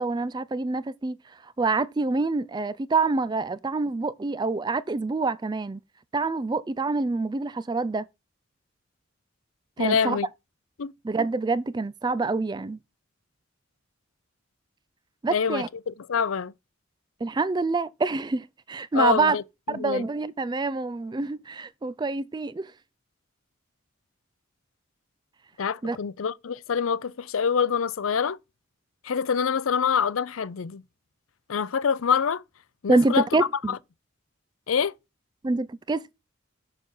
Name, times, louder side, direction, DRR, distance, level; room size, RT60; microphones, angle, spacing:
voice 1, 0.0-5.8 6.1-8.1 9.8-10.2 11.0-12.8 15.2-15.7 17.2-19.4 19.7-22.7 25.8-26.0 32.9-33.8 35.4-36.1, right 3 dB, 20° right, 0.3 m, -26 dB
voice 2, 9.8-10.3 10.8-10.9 15.3-16.5 18.9-19.4 19.8-20.1 25.6-28.4 29.0-30.8 31.5-32.4 32.8-33.2 33.7-33.8 34.7-34.9, left 6 dB, 85° left, 0.5 m, -25 dB
6.6 x 6.2 x 5.4 m
head